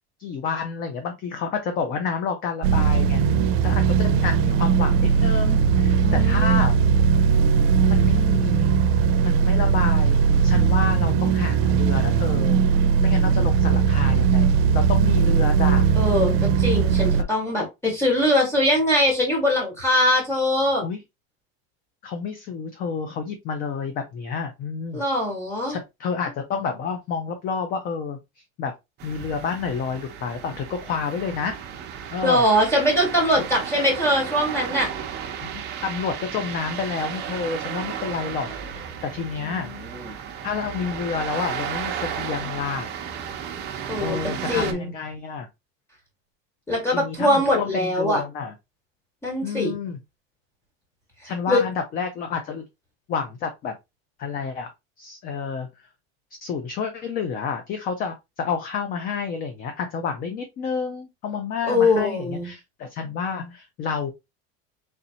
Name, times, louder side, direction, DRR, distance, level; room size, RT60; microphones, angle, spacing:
voice 1, 0.2-6.7 7.9-8.7 9.2-12.6 13.0-15.9 17.2-17.3 20.8-21.0 22.0-25.0 25.7-28.7 29.0-31.6 32.1-32.4 35.4-39.7 40.4-42.9 44.0-45.5 46.9-48.5 49.4-50.0 51.2-52.6 53.1-53.8 54.2-54.7 55.0-55.9 56.4-64.1, left 6 dB, 30° left, 0.5 m, -29 dB
sound 1, 2.6-17.2, right 6 dB, 85° right, 0.5 m, -19 dB
voice 2, 6.0-6.7 16.0-20.8 24.9-25.8 32.2-34.9 39.4-40.1 43.9-44.2 44.5-44.9 46.7-48.2 49.2-49.7 51.5-51.6 61.7-62.5, left 1 dB, 10° left, 1.6 m, -22 dB
sound 2, 29.0-44.7, right 8 dB, 35° right, 0.8 m, -34 dB
4.1 x 3.2 x 2.8 m
cardioid pair, 165°, 30 cm